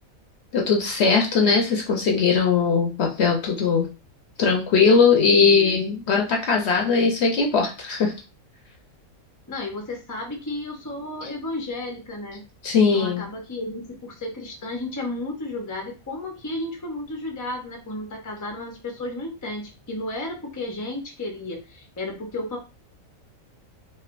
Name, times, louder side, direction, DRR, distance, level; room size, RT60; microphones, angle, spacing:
voice 1, 0.5-3.9 4.4-8.1 12.6-13.2, left 5 dB, 60° left, 1 dB, 0.8 m, -20 dB
voice 2, 5.4-5.9 9.5-12.4 12.8-22.6, left 2 dB, 25° left, 1 dB, 0.4 m, -33 dB
3.2 x 2.5 x 2.5 m, 0.31 s
omnidirectional pair, 1.4 m